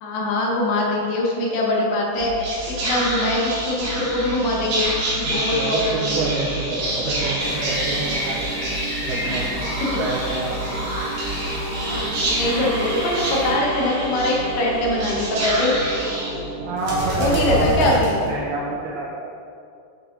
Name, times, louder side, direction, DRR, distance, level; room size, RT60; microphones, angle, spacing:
voice 1, 0.0-6.3 10.7-10.9 11.8-15.8 17.2-18.1, left 1 dB, 75° left, -3 dB, 3.1 m, -23 dB
Whispering, 2.1-18.7, right 1 dB, 60° right, 3.2 m, -27 dB
voice 2, 5.2-8.7 9.0-9.5 10.0-10.6 16.6-17.9 18.3-19.3, right 3 dB, 80° right, -5 dB, 2.3 m, -27 dB
sound 1, 7.4-13.5, left 1 dB, 55° left, 1.9 m, -33 dB
7.8 x 4.7 x 3.8 m, 2.4 s
omnidirectional pair, 5.2 m